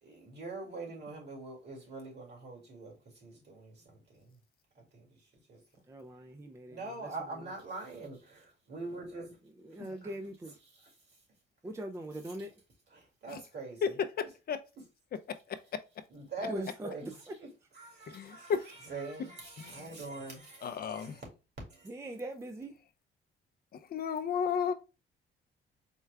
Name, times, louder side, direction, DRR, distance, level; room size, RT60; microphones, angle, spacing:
voice 1, 0.0-4.4 4.8-5.6 6.7-9.4 10.0-10.1 10.6-11.0 12.9-14.0 16.1-17.5 17.7-21.2 21.7-21.9, right 3 dB, 60° right, 2.1 m, -44 dB
voice 2, 5.9-7.1 9.6-10.6 11.6-12.5 16.5-17.3 21.9-22.8, right 1 dB, 15° right, 0.4 m, -41 dB
voice 3, 14.2-14.6 15.3-15.6 18.1-18.7 19.6-19.9 20.6-21.2 23.7-24.7, left 7 dB, 50° left, 0.5 m, -33 dB
4.4 x 2.3 x 3.2 m
cardioid pair, 90°, 20 cm